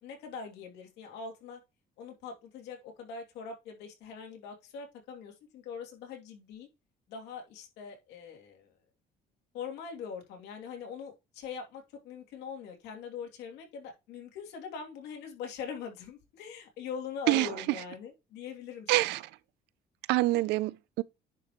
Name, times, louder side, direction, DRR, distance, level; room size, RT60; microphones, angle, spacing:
voice 1, 0.0-1.6 2.0-6.7 7.1-8.7 9.5-19.1, left 6 dB, 90° left, 2.8 m, -42 dB
voice 2, 18.9-19.2 20.1-21.0, right 18 dB, 85° right, 0.4 m, -26 dB
10.0 x 4.9 x 3.0 m
cardioid pair, 110°, 17 cm